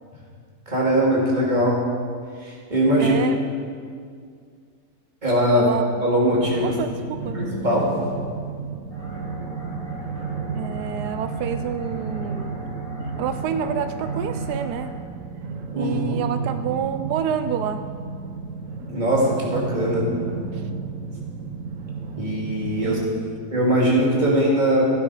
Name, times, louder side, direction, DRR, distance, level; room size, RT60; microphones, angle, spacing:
voice 1, 0.7-1.8 2.4-3.2 5.2-5.7 6.0-6.7 7.3-7.9 15.7-16.2 18.9-20.0 22.2-23.0 23.5-24.9, equal, 30° right, -5 dB, 2.9 m, -21 dB
voice 2, 3.0-3.4 5.5-5.8 6.6-7.4 10.5-12.6 13.2-14.9 15.8-17.8 20.5-20.7 22.8-23.4, right 8 dB, 90° right, 9 dB, 1.2 m, -28 dB
sound 1, 6.3-23.1, right 4 dB, 55° right, 1.4 m, -32 dB
sound 2, 8.9-15.0, left 1 dB, 35° left, 2.5 m, -40 dB
15.5 x 10.5 x 4.9 m, 2.1 s
omnidirectional pair, 1.7 m